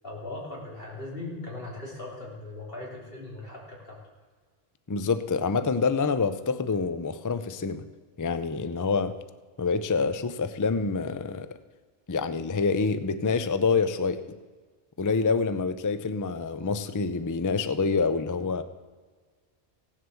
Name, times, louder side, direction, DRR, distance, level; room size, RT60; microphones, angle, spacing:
voice 1, 0.0-4.0, left 2 dB, 65° left, -3 dB, 3.8 m, -39 dB
voice 2, 4.9-7.8 8.2-9.2 9.6-11.5 12.1-14.4 15.0-18.6, left 4 dB, 25° left, 12 dB, 0.4 m, -27 dB
16.0 x 7.9 x 7.0 m, 1.5 s
omnidirectional pair, 1.0 m